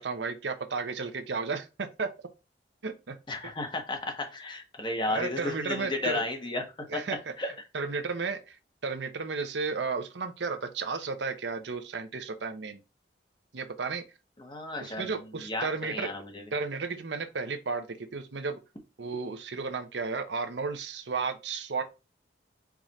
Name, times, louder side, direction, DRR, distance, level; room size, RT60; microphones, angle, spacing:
voice 1, 0.0-2.1 2.8-3.2 5.1-6.2 6.9-7.3 7.7-8.6 8.8-12.8 13.5-14.0 14.8-16.1 16.5-18.6 19.0-21.8, right 4 dB, 75° right, 0.7 m, -33 dB
voice 2, 3.3-6.6 6.9-7.5 14.4-15.1 15.4-16.4, left 2 dB, 25° left, 1.0 m, -33 dB
4.8 x 2.5 x 4.1 m
head